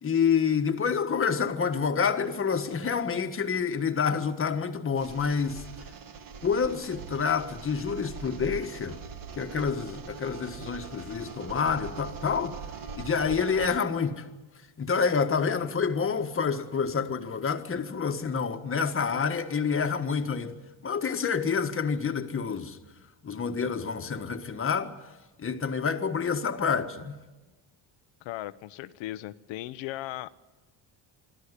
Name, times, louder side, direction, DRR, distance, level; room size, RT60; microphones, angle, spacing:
voice 1, 0.0-5.7 6.4-9.0 9.4-12.6 12.9-14.3 14.8-20.5 20.8-22.8 23.2-24.9 25.4-27.2, left 6 dB, 30° left, 1.5 m, -28 dB
sound 1, 5.0-13.8, right 6 dB, 50° right, 1.5 m, -42 dB
voice 2, 28.2-30.3, left 15 dB, 90° left, 0.9 m, -37 dB
24.5 x 13.5 x 9.9 m
cardioid pair, 120°, 44 cm